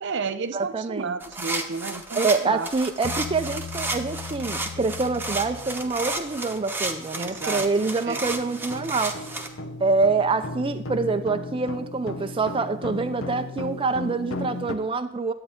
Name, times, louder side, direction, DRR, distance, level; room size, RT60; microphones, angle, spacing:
voice 1, 0.0-2.7 7.1-7.7 8.1-8.2, right 4 dB, 60° right, 11 dB, 0.6 m, -32 dB
voice 2, 0.5-1.1 2.2-9.2 9.8-15.3, right 4 dB, 25° right, 7 dB, 0.5 m, -26 dB
sound 1, 1.2-9.5, right 2 dB, 10° right, 1.0 m, -32 dB
Bass guitar, 3.0-6.4, left 5 dB, 60° left, 0.4 m, -38 dB
sound 2, 4.1-4.2 4.7-4.9 5.3-14.8, left 2 dB, 85° left, 0.9 m, -37 dB
11.0 x 8.8 x 3.6 m, 0.78 s
head